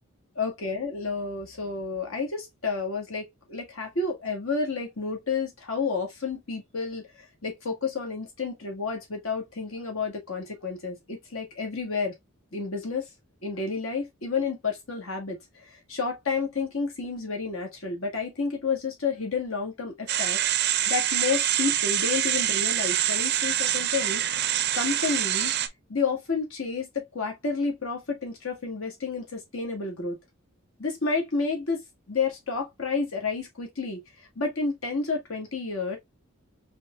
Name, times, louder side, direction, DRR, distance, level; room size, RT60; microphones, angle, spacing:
voice 1, 0.3-12.1 12.5-13.1 13.4-24.4 24.7-25.6 25.9-30.1 30.8-36.0, left 4 dB, 70° left, 1.7 m, -30 dB
sound 1, 20.1-25.7, right 12 dB, 50° right, 0.5 m, -25 dB
4.4 x 3.5 x 2.4 m
head